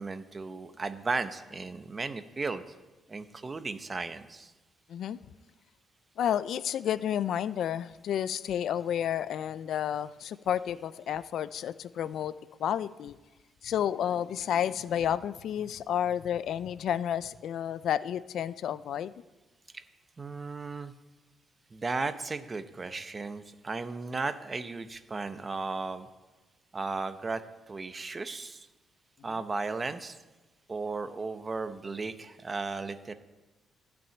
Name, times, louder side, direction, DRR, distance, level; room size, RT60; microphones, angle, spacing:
voice 1, 0.0-2.6 3.1-4.5 19.7-19.8 20.2-20.9 21.7-26.1 26.7-27.4 27.7-28.7 29.2-30.2 30.7-33.1, right 3 dB, 30° right, 11 dB, 0.8 m, -35 dB
voice 2, 6.2-12.3 12.6-13.2 13.6-19.1, left 10 dB, 70° left, 17 dB, 0.4 m, -31 dB
12.5 x 6.1 x 8.5 m, 1.2 s
cardioid pair, 90°, 0 cm